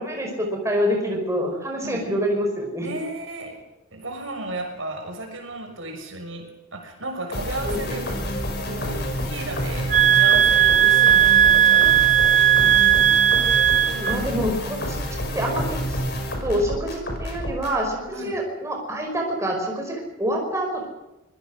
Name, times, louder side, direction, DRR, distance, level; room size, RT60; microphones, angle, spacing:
voice 1, 0.0-2.9 7.6-7.8 14.0-16.0 16.4-20.9, equal, 15° right, 1 dB, 5.1 m, -26 dB
voice 2, 2.8-3.6 3.9-12.4 18.1-18.4, right 2 dB, 70° right, 3 dB, 6.3 m, -34 dB
sound 1, 7.3-17.8, equal, 50° left, 5.9 m, -29 dB
sound 2, 9.9-14.2, right 11 dB, 40° right, 1.2 m, -16 dB
25.5 x 21.5 x 6.4 m, 1.0 s
head